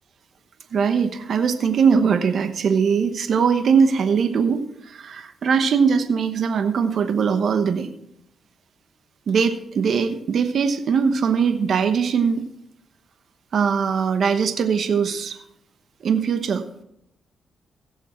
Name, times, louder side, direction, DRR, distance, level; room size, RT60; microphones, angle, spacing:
voice 1, 0.7-7.9 9.3-12.4 13.5-15.4 16.0-16.6, right 6 dB, 65° right, 8 dB, 1.0 m, -21 dB
16.5 x 7.1 x 4.3 m, 0.78 s
cardioid pair, 80°, 0 cm